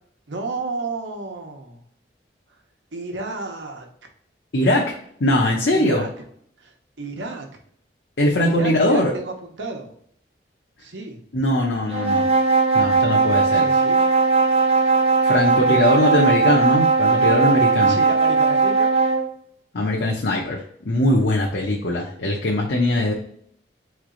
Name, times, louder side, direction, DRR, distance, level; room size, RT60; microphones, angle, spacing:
voice 1, 0.3-1.8 2.9-3.9 5.7-6.3 6.6-7.5 8.4-9.9 10.8-11.2 13.5-14.0 17.8-18.9, right 3 dB, 90° right, 3 dB, 0.9 m, -32 dB
voice 2, 4.5-4.8 5.2-6.0 8.2-9.1 11.3-12.3 12.7-13.7 15.2-18.0 19.7-23.1, left 1 dB, 75° left, -2 dB, 0.7 m, -20 dB
sound 1, 11.9-19.3, right 4 dB, 35° right, 0.7 m, -18 dB
4.1 x 3.2 x 3.8 m, 0.65 s
head